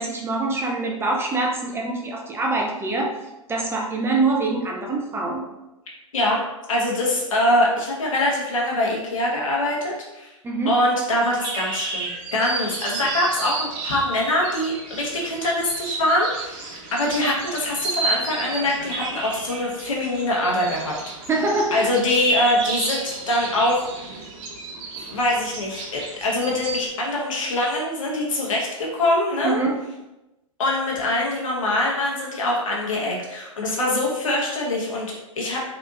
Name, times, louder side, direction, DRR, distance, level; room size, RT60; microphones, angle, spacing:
voice 1, 0.0-3.1 3.5-5.4 10.4-10.7 21.3-21.9 29.4-29.8, right 3 dB, 15° right, 0 dB, 0.5 m, -24 dB
voice 2, 6.7-10.3 10.7-21.0 21.7-24.3 25.0-29.6 30.6-35.6, left 1 dB, 70° left, -3 dB, 1.3 m, -23 dB
sound 1, 11.2-26.9, right 3 dB, 45° right, 0.9 m, -32 dB
3.9 x 3.4 x 2.6 m, 0.98 s
hypercardioid pair, 110°, 17 cm